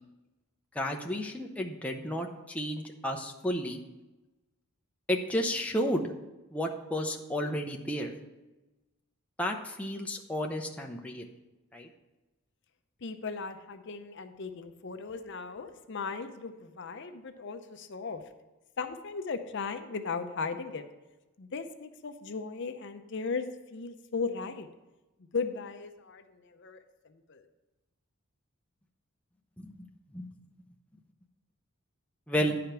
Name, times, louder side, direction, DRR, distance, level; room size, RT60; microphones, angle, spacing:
voice 1, 0.7-3.8 5.1-6.0 6.5-8.1 9.4-11.3 11.7-11.9 29.6-29.8 30.1-30.3 32.3-32.6, equal, 5° left, 1 dB, 0.6 m, -32 dB
voice 2, 13.0-18.2 18.8-20.8 21.4-24.7 25.3-27.5, left 4 dB, 55° left, 8 dB, 0.6 m, -37 dB
10.0 x 5.0 x 5.8 m, 1.1 s
head